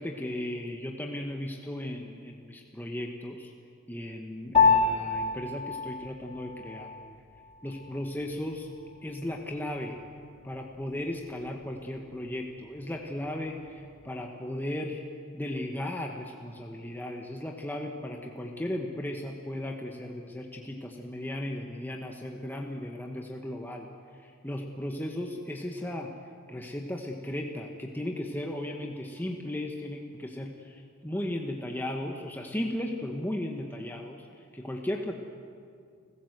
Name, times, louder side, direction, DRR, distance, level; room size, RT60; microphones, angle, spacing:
voice 1, 0.0-3.5 3.9-6.9 7.6-8.7 9.0-10.0 10.4-15.0 15.3-23.9 24.1-26.2 26.5-35.1, left 1 dB, 10° left, 1 dB, 1.2 m, -36 dB
Piano, 4.5-14.2, left 5 dB, 25° left, 2.5 m, -31 dB
30.0 x 15.5 x 8.0 m, 2.3 s
head